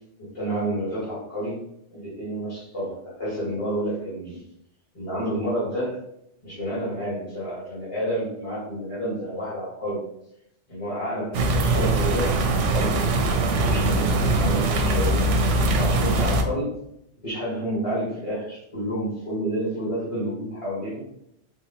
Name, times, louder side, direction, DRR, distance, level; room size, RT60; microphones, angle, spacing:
voice 1, 0.2-1.6 1.9-4.4 4.9-6.0 6.4-10.0 10.7-13.0 13.2-15.2 15.7-16.8 17.2-21.0, equal, 25° left, -9 dB, 1.5 m, -29 dB
sound 1, 11.3-16.4, right 2 dB, 80° right, 0.9 m, -22 dB
4.1 x 3.0 x 2.8 m, 0.76 s
omnidirectional pair, 1.3 m